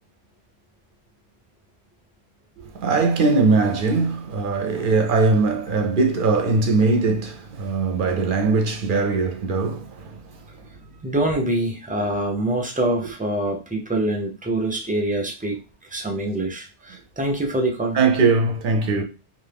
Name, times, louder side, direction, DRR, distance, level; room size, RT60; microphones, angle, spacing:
voice 1, 2.6-10.2 17.9-19.0, right 3 dB, 55° right, 0.7 m, -20 dB
voice 2, 11.0-15.6 15.9-18.0, right 1 dB, 10° right, 0.4 m, -25 dB
2.7 x 2.4 x 3.4 m
omnidirectional pair, 1.2 m